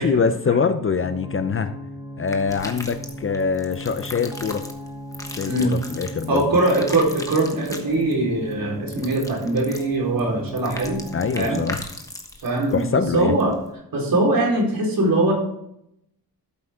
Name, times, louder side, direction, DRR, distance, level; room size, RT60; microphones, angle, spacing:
voice 1, 0.0-1.7 2.2-4.6 5.3-6.4 11.1-11.8 12.7-13.3, left 5 dB, 35° left, 10 dB, 0.5 m, -24 dB
sound 1, 1.0-11.7, left 1 dB, 10° right, 0.7 m, -37 dB
sound 2, 2.3-13.7, left 1 dB, 10° left, 1.2 m, -39 dB
voice 2, 6.3-11.0 11.3-11.6 12.4-13.5 13.9-15.3, right 2 dB, 60° right, -2 dB, 4.1 m, -21 dB
13.0 x 8.0 x 3.6 m, 0.76 s
wide cardioid pair, 155°, 39 cm